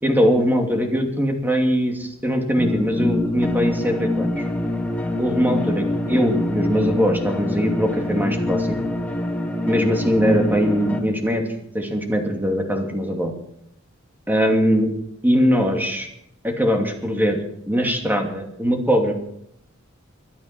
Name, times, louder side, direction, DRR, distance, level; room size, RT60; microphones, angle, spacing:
voice 1, 0.0-4.4 5.2-8.8 9.7-11.4 11.7-13.3 14.3-14.9 15.2-16.1 16.4-17.4 17.7-19.2, equal, 10° right, 2 dB, 2.6 m, -21 dB
sound 1, 2.6-11.0, left 2 dB, 5° left, 1.7 m, -25 dB
24.0 x 8.6 x 6.0 m, 0.75 s
head